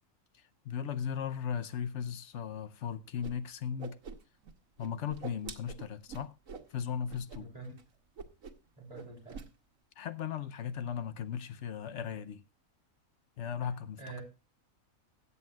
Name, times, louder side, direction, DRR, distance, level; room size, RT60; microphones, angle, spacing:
voice 1, 0.6-4.0 4.8-6.3 6.7-7.5 10.0-12.4 13.4-14.2, left 8 dB, 65° left, 1.0 m, -37 dB
Whoosh swoosh swish, 3.2-3.3 3.6-4.5 4.8-6.7 7.1-7.4 7.6-7.8 8.2-8.7 8.9-9.5, right 5 dB, 80° right, 1.5 m, -45 dB
voice 2, 7.4-7.8 8.8-9.4 13.6-13.7 14.0-14.2, right 3 dB, 30° right, 3.3 m, -46 dB
21.5 x 8.3 x 2.3 m
omnidirectional pair, 1.4 m